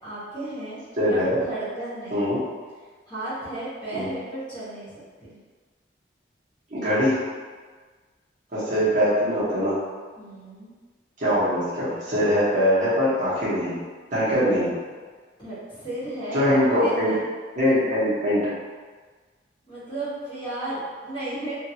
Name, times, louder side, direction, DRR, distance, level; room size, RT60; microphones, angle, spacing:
voice 1, 0.0-0.8 1.1-2.4 3.1-4.9 5.2-5.4 10.2-10.8 15.4-17.2 19.6-21.5, right 1 dB, 30° left, -12 dB, 1.3 m, -34 dB
voice 2, 1.0-1.4 2.1-2.4 3.9-4.1 6.7-7.2 8.5-9.7 11.2-13.8 14.1-14.7 16.3-17.1 17.6-18.5, equal, 45° right, -11 dB, 1.1 m, -22 dB
2.8 x 2.6 x 2.8 m, 1.5 s
head